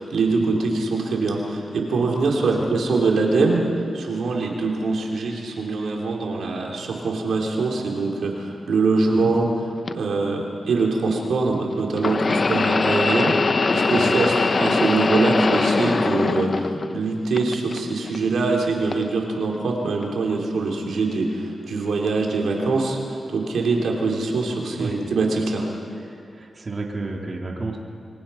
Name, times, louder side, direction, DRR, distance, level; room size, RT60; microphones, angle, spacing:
voice 1, 0.0-3.7 3.9-9.5 9.9-25.6, right 3 dB, 80° right, 0 dB, 3.6 m, -23 dB
sound 1, 9.9-10.0 12.0-17.0 17.3-18.2 18.9-19.0 20.0-20.1, left 3 dB, 45° left, 0.9 m, -21 dB
voice 2, 13.9-14.3 24.8-25.0 25.9-27.8, right 3 dB, 40° right, 0 dB, 3.0 m, -32 dB
26.5 x 23.5 x 5.8 m, 2.4 s
cardioid pair, 70°, 0 cm